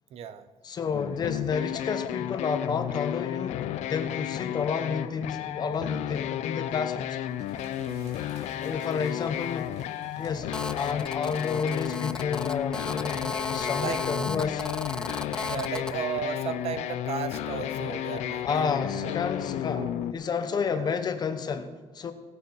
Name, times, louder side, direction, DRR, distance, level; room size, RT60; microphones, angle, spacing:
voice 1, 0.1-0.5 7.8-8.3 13.7-14.3 15.4-19.1 19.7-20.0 20.7-20.9, right 8 dB, 60° right, 0.7 m, -35 dB
voice 2, 0.6-7.1 8.6-9.7 10.2-14.6 18.4-19.9 20.1-22.1, left 6 dB, 35° left, 0.9 m, -30 dB
sound 1, 0.9-20.1, left 12 dB, 90° left, 0.6 m, -33 dB
sound 2, 7.2-11.9, right 3 dB, 80° right, 3.0 m, -56 dB
Telephone, 10.5-15.9, left 2 dB, 5° left, 0.4 m, -35 dB
17.0 x 8.2 x 4.6 m
cardioid pair, 150°, 12 cm